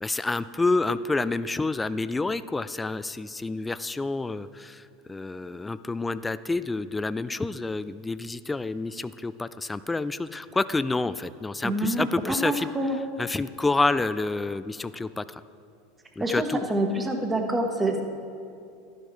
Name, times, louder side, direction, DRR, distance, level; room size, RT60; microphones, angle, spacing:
voice 1, 0.0-4.8 5.1-12.7 13.2-15.4 16.2-16.6, left 3 dB, 15° left, 15 dB, 0.3 m, -28 dB
voice 2, 11.6-13.0 16.2-18.0, right 1 dB, 15° right, 3 dB, 1.3 m, -27 dB
12.5 x 10.5 x 3.3 m, 2.4 s
hypercardioid pair, 85°, 0 cm